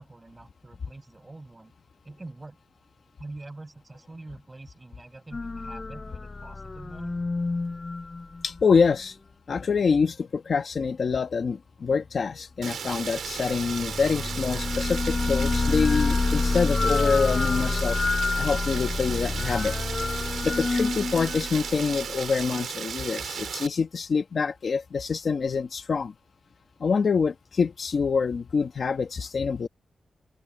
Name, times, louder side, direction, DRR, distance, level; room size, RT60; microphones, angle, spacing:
voice 1, 0.0-1.7 2.0-2.6 3.2-7.2, right 2 dB, 20° right, 6.9 m, -44 dB
sound 1, 5.3-8.9 13.2-22.4, left 3 dB, 30° left, 0.3 m, -28 dB
voice 2, 8.4-9.2 9.5-18.0 18.4-19.8 20.4-26.1 26.8-29.7, left 5 dB, 50° left, 1.1 m, -26 dB
Rain, 12.6-23.7, right 7 dB, 85° right, 3.2 m, -35 dB
open air
wide cardioid pair, 155°, 0 cm